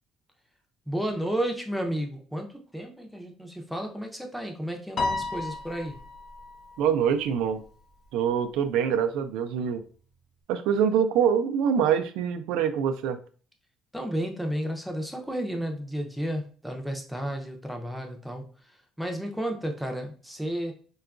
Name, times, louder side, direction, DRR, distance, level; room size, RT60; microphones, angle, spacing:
voice 1, 0.9-6.0 13.9-18.5 19.0-20.7, equal, ahead, 3 dB, 0.5 m, -32 dB
Piano, 5.0-7.5, left 3 dB, 45° left, 0.5 m, -33 dB
voice 2, 6.8-7.6 8.1-9.8 10.5-13.2, right 8 dB, 85° right, 8 dB, 0.4 m, -24 dB
3.7 x 2.3 x 2.4 m, 0.42 s
cardioid pair, 120°, 0 cm